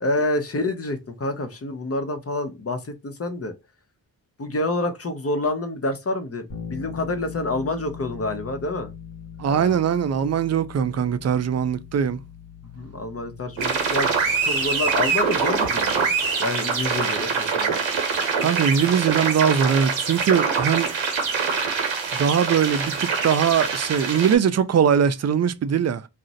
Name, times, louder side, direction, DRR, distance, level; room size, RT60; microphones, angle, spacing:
voice 1, 0.0-3.5 4.4-8.9 9.4-9.8 12.6-17.8, left 2 dB, 30° left, 0.7 m, -28 dB
Bass guitar, 6.5-16.4, left 7 dB, 65° left, 1.0 m, -41 dB
voice 2, 9.4-12.2 18.4-20.9 22.1-26.1, right 7 dB, 40° right, 0.4 m, -21 dB
sound 1, 13.6-24.4, right 5 dB, 85° right, 0.8 m, -24 dB
2.5 x 2.0 x 3.9 m
supercardioid pair, 40°, 45 cm